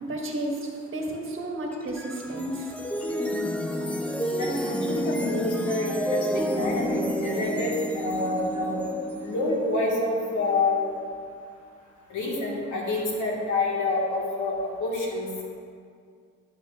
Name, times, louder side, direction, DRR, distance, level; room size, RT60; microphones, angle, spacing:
voice 1, 0.0-2.7, right 1 dB, 45° right, -1 dB, 1.5 m, -32 dB
sound 1, 1.7-11.0, equal, 5° left, 0.7 m, -30 dB
voice 2, 4.3-8.8 9.2-10.8 12.1-15.3, left 2 dB, 80° left, -3 dB, 1.7 m, -27 dB
12.0 x 6.5 x 2.5 m, 2.2 s
cardioid pair, 90°, 30 cm